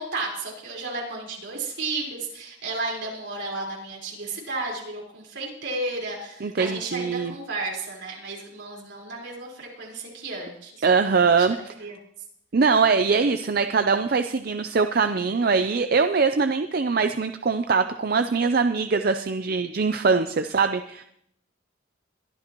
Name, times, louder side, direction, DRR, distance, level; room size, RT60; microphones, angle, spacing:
voice 1, 0.0-11.5 11.8-12.0, right 3 dB, 75° right, -2 dB, 4.4 m, -33 dB
voice 2, 6.4-7.3 10.8-11.6 12.5-21.0, right 4 dB, 55° right, 9 dB, 0.5 m, -22 dB
22.0 x 12.5 x 3.0 m, 0.73 s
head